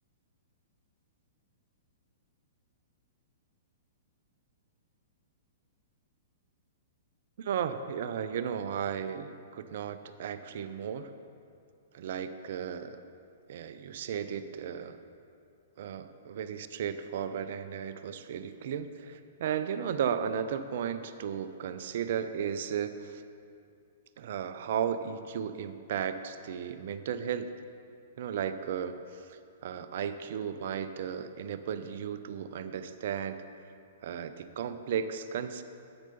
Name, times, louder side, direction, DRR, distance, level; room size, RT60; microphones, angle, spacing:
voice 1, 7.4-11.1 11.9-13.0 13.5-15.0 15.8-23.2 24.2-27.5 28.2-33.4 34.0-35.6, right 8 dB, 55° right, 11 dB, 0.5 m, -35 dB
10.5 x 7.7 x 4.0 m, 2.4 s
figure-of-eight pair, 110°, 0 cm